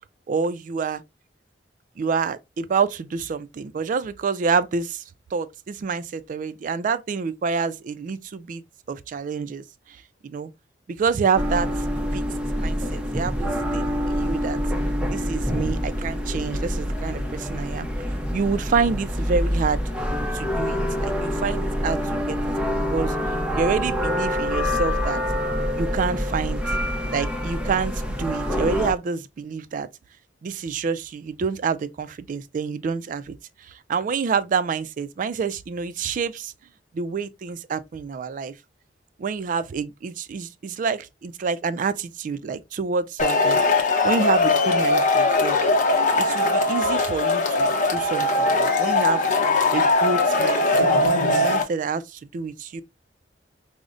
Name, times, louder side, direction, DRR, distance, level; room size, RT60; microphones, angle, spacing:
voice 1, 0.3-1.0 2.0-5.0 5.3-8.6 8.9-9.6 10.2-10.5 10.9-11.8 12.1-12.2 12.6-14.6 15.1-17.9 18.3-19.8 20.3-22.4 22.7-23.2 23.6-25.2 25.7-26.8 27.1-29.9 30.4-36.5 36.9-38.5 39.2-43.6 44.0-45.6 46.2-49.3 49.7-50.9 51.2-52.8, right 5 dB, 45° right, 0.3 m, -27 dB
sound 1, 11.3-28.9, equal, 5° right, 0.6 m, -26 dB
Male speech man speaking / Shout / Clapping, 43.2-51.6, left 2 dB, 45° left, 0.7 m, -20 dB
4.9 x 2.0 x 2.5 m
head